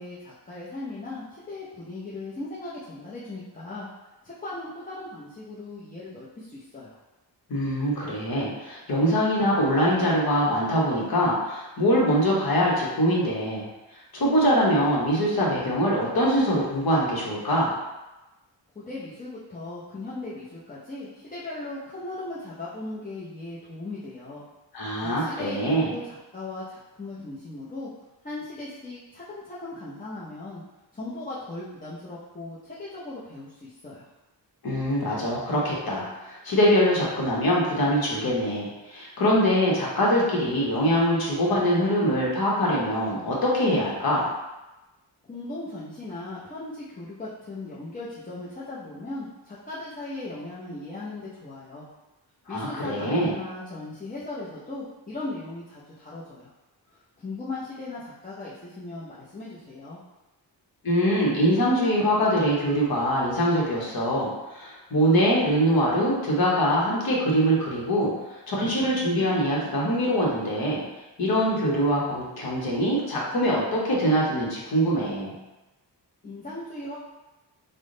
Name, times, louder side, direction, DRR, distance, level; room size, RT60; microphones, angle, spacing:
voice 1, 0.0-3.9 4.2-7.0 18.7-24.4 25.0-27.9 28.2-30.6 30.9-34.1 45.3-51.9 52.5-56.5 56.9-60.0 76.2-76.9, left 2 dB, 20° left, -9 dB, 0.5 m, -38 dB
voice 2, 7.5-13.7 14.1-17.7 24.7-25.9 34.6-44.3 52.5-53.3 60.8-68.1 68.5-70.8 71.2-75.3, equal, 55° left, -4 dB, 1.0 m, -23 dB
3.5 x 2.1 x 3.7 m, 1.0 s
wide cardioid pair, 135°, 44 cm